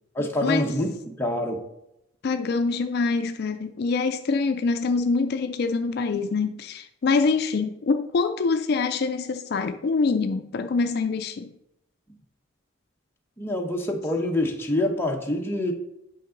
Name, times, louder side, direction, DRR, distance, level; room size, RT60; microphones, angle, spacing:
voice 1, 0.2-1.6 13.4-15.7, left 1 dB, 10° left, 0.9 m, -26 dB
voice 2, 2.2-11.5, left 4 dB, 55° left, 0.4 m, -25 dB
8.4 x 5.3 x 3.8 m
head